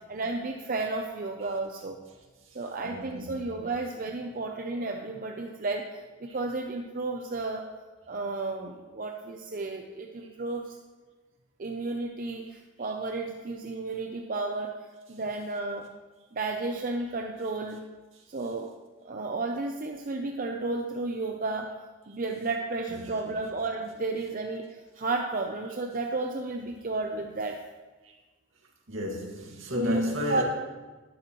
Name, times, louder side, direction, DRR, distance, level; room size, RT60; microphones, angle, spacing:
voice 1, 0.0-2.0 2.5-7.7 8.1-10.8 11.6-14.7 15.1-15.9 16.3-17.8 18.3-18.7 19.0-21.7 22.1-24.7 25.0-27.6 29.8-30.0 30.3-30.4, right 3 dB, 45° right, 3 dB, 0.6 m, -32 dB
voice 2, 2.8-3.7 22.9-23.5 26.6-26.7 27.2-27.3 28.9-30.4, equal, 75° right, -1 dB, 2.1 m, -33 dB
12.0 x 10.5 x 3.1 m, 1.3 s
head